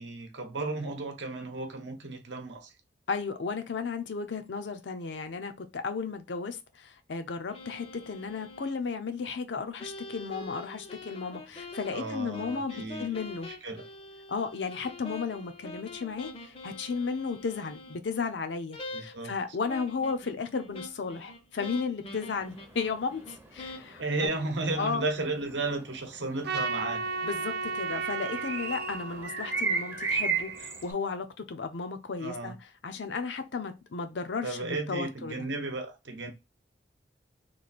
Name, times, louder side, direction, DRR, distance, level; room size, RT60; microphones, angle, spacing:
voice 1, 0.0-2.7 11.9-13.2 13.6-13.8 18.9-19.3 24.0-27.0 32.2-32.5 34.4-36.3, right 2 dB, 80° right, 0.8 m, -34 dB
voice 2, 3.1-13.5 14.3-24.3 24.8-25.0 27.2-35.5, left 5 dB, 80° left, 0.6 m, -34 dB
sound 1, 7.5-8.7 9.8-18.0 18.7-19.3 19.7-24.3, left 2 dB, 35° left, 0.5 m, -44 dB
sound 2, 22.4-30.9, right 5 dB, 15° right, 0.5 m, -35 dB
Trumpet, 26.4-30.8, right 4 dB, 65° right, 0.5 m, -35 dB
3.1 x 2.5 x 4.1 m
head